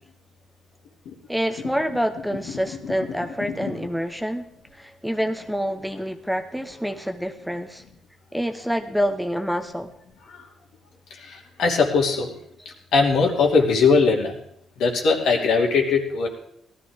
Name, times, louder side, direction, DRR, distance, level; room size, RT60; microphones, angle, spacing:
voice 1, 1.3-4.5 4.7-7.8 8.3-9.9, equal, ahead, 6 dB, 1.0 m, -27 dB
voice 2, 11.1-12.4 12.9-14.4 14.8-16.3, left 4 dB, 80° left, 0 dB, 2.9 m, -20 dB
18.0 x 13.0 x 3.7 m, 0.71 s
cardioid pair, 90°, 0 cm